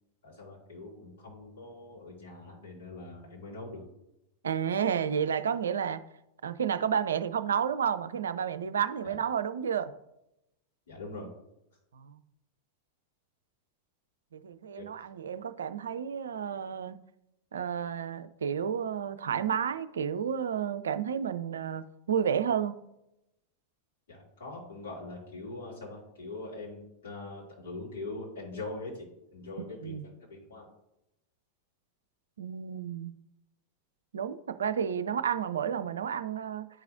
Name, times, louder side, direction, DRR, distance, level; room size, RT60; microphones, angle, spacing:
voice 1, 0.2-3.8 9.0-9.2 10.9-11.3 14.8-14.9 24.1-30.7, left 2 dB, 60° left, -4 dB, 2.5 m, -42 dB
voice 2, 4.4-6.0 6.4-9.9 11.9-12.2 14.3-17.0 17.5-22.7 29.8-30.0 32.4-33.1 34.1-36.7, right 8 dB, 65° right, 11 dB, 0.4 m, -31 dB
11.0 x 4.7 x 2.6 m, 0.86 s
figure-of-eight pair, 90°, 0 cm